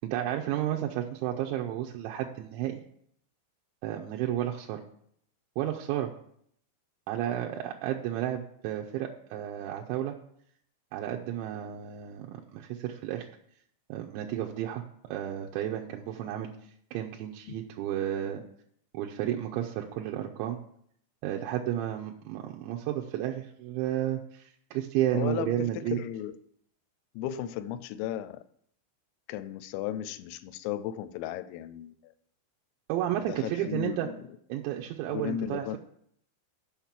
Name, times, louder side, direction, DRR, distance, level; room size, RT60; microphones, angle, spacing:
voice 1, 0.1-2.8 3.8-4.8 5.6-6.1 7.1-10.2 10.9-13.3 13.9-14.8 15.1-16.5 16.9-18.4 18.9-20.6 21.2-26.0 32.9-34.1 34.5-35.8, right 12 dB, 85° right, 0 dB, 2.8 m, -32 dB
voice 2, 25.1-26.4 27.1-28.4 29.3-32.1 33.2-34.2 35.1-35.8, left 11 dB, 85° left, 14 dB, 2.9 m, -35 dB
7.3 x 5.9 x 7.2 m, 0.68 s
omnidirectional pair, 5.3 m